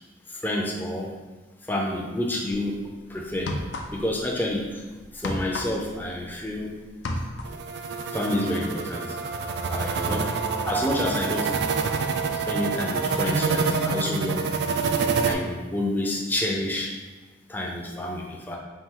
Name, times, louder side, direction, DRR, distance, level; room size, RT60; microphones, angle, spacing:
voice 1, 0.3-1.1 1.7-3.6 3.9-4.8 5.1-6.7 8.1-9.1 9.7-10.3 10.7-11.5 12.4-14.6 15.2-16.9 17.5-18.6, left 1 dB, 10° left, -2 dB, 0.4 m, -29 dB
sound 1, 2.5-2.7 3.3-4.2 4.5-6.6 6.9-7.7, left 1 dB, 80° left, 0.5 m, -32 dB
sound 2, 7.4-15.3, right 5 dB, 65° right, 0.3 m, -27 dB
4.2 x 2.6 x 3.7 m, 1.3 s
head